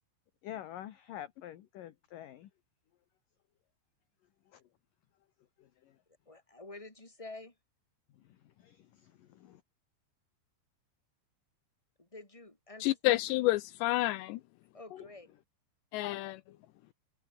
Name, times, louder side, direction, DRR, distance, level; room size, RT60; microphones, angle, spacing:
voice 1, 0.4-2.5 4.5-4.6 5.6-6.0 8.1-9.6 14.9-15.1 16.0-16.6, left 12 dB, 65° left, 2.4 m, -48 dB
voice 2, 6.2-7.6 12.0-13.2 14.7-15.3, left 2 dB, 5° left, 4.5 m, -49 dB
voice 3, 12.8-14.4 15.9-16.4, left 17 dB, 85° left, 2.8 m, -29 dB
omnidirectional pair, 5.3 m